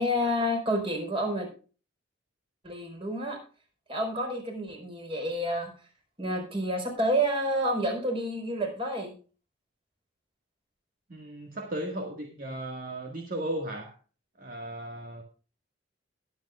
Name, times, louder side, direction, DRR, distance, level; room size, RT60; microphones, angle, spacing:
voice 1, 0.0-1.5 2.6-3.4 3.9-5.7 6.2-9.1, equal, 30° right, 2 dB, 4.6 m, -29 dB
voice 2, 11.1-13.9 14.4-15.2, right 1 dB, 45° right, 2 dB, 1.9 m, -36 dB
21.0 x 8.4 x 2.4 m, 0.37 s
head